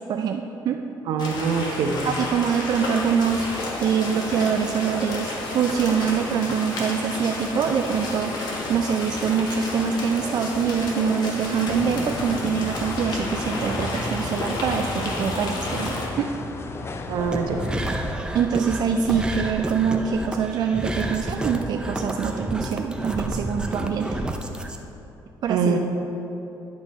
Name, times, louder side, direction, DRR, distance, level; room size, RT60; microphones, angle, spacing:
voice 1, 0.1-0.8 2.0-16.3 18.3-24.2 25.4-25.8, right 7 dB, 55° right, 4 dB, 0.4 m, -24 dB
voice 2, 1.1-2.0 17.1-17.6 25.5-25.8, right 6 dB, 80° right, 4 dB, 0.8 m, -24 dB
sound 1, 1.2-16.1, left 2 dB, 65° left, 1.5 m, -31 dB
sound 2, 11.7-18.1, left 3 dB, 30° left, 0.5 m, -33 dB
sound 3, 17.2-24.8, right 1 dB, 10° right, 0.6 m, -30 dB
10.5 x 5.2 x 4.2 m, 2.9 s
cardioid pair, 95°, 8 cm